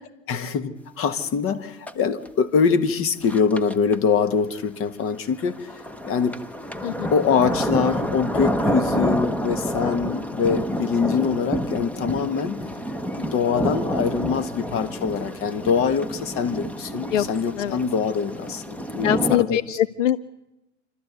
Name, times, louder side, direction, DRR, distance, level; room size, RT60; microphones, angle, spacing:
voice 1, 0.3-5.7 6.0-6.4 7.1-12.6 13.1-19.8, left 6 dB, 35° left, 12 dB, 1.5 m, -24 dB
sound 1, 1.9-2.0 2.3-2.4 3.2-4.0 5.2-19.3, equal, 5° left, 0.9 m, -28 dB
voice 2, 19.0-20.2, left 11 dB, 75° left, 18 dB, 0.7 m, -23 dB
28.5 x 13.0 x 8.2 m, 0.96 s
hypercardioid pair, 100°, 38 cm